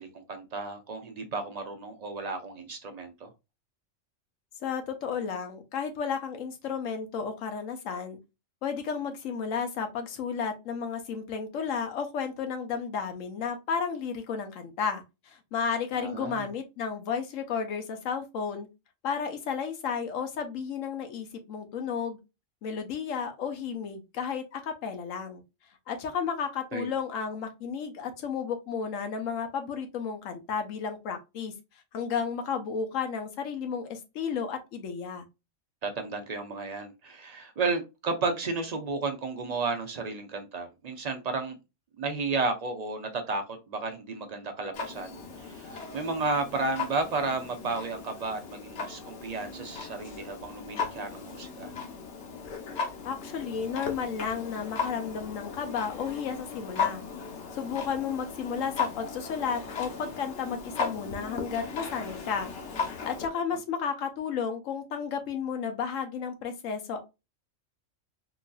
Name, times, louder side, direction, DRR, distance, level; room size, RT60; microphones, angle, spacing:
voice 1, 0.0-3.3 15.9-16.5 26.7-26.9 35.8-41.6 42.0-51.7 63.3-63.6, right 3 dB, 55° right, 6 dB, 0.4 m, -33 dB
voice 2, 4.6-8.2 8.6-18.7 19.0-22.2 22.6-25.4 25.9-31.5 31.9-35.3 53.0-57.0 57.5-62.5 63.0-67.0, left 6 dB, 85° left, 6 dB, 1.1 m, -33 dB
Clock, 44.7-63.3, left 5 dB, 65° left, 1.0 m, -37 dB
3.8 x 2.6 x 2.2 m, 0.25 s
omnidirectional pair, 1.3 m